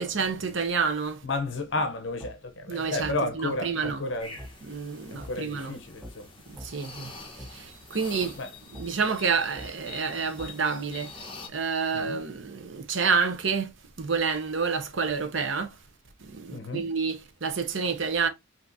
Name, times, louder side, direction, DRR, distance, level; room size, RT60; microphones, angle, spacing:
voice 1, 0.0-1.2 2.7-4.0 4.7-5.8 6.6-7.1 7.5-7.6 7.9-8.3 8.7-11.1 11.5-13.7 14.0-15.7 16.3-18.3, right 5 dB, 65° right, 0.8 m, -28 dB
voice 2, 1.2-4.4 5.1-6.3 8.3-8.6 11.9-12.2 16.5-16.9, left 2 dB, 65° left, 0.8 m, -32 dB
sound 1, 2.2-2.3 3.0-3.2 3.8-4.0 4.4-4.5 5.2-5.3 6.0-6.1 6.6-6.7 7.4-7.5 8.2-8.3 8.7-8.9 9.6-9.7 10.4-10.5, equal, 5° right, 0.8 m, -42 dB
sound 2, 4.2-11.5, left 3 dB, 25° left, 1.1 m, -46 dB
5.9 x 2.8 x 2.6 m
head